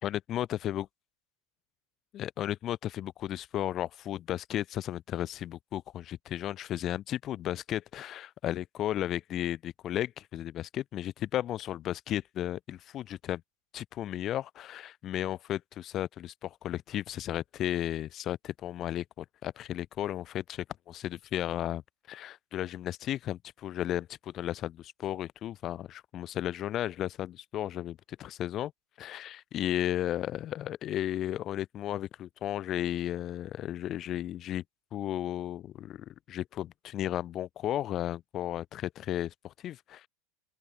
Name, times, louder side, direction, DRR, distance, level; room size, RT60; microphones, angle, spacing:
voice 1, 0.0-0.8 2.1-13.4 13.7-21.8 22.1-28.7 29.0-34.6 34.9-40.1, left 12 dB, 40° left, 1.1 m, -34 dB
open air
supercardioid pair, 125°, 0 cm